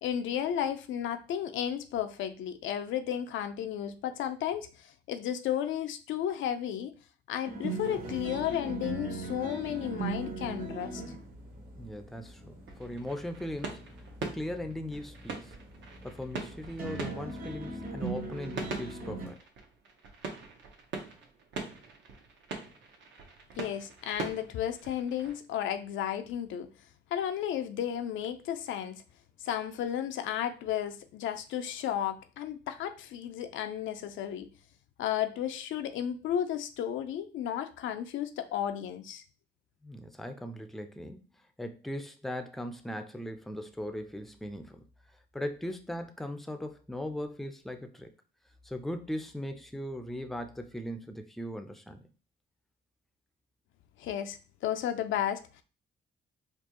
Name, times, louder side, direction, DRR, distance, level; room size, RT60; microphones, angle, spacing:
voice 1, 0.0-6.9 7.3-11.0 23.6-26.7 27.1-29.0 29.4-34.5 35.0-39.2 54.0-55.6, left 10 dB, 75° left, 0.4 m, -33 dB
sound 1, 7.4-19.3, right 3 dB, 45° right, 1.2 m, -40 dB
voice 2, 11.8-13.9 14.2-15.6 16.0-19.4 39.8-41.2 41.6-44.8 45.3-48.1 48.6-52.0, left 1 dB, ahead, 0.5 m, -39 dB
sound 2, 12.7-25.4, right 4 dB, 65° right, 1.0 m, -43 dB
4.4 x 2.4 x 2.9 m
cardioid pair, 90°, 20 cm